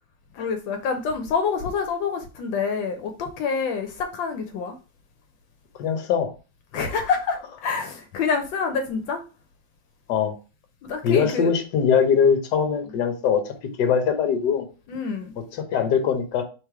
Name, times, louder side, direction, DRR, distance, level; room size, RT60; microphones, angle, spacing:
voice 1, 0.3-4.7 6.7-9.2 10.8-11.5 14.9-15.3, left 5 dB, 85° left, 5 dB, 1.4 m, -27 dB
voice 2, 5.8-6.3 10.1-10.3 11.0-14.6 15.5-16.4, left 7 dB, 65° left, 5 dB, 1.4 m, -22 dB
3.4 x 3.3 x 4.6 m, 0.33 s
omnidirectional pair, 2.0 m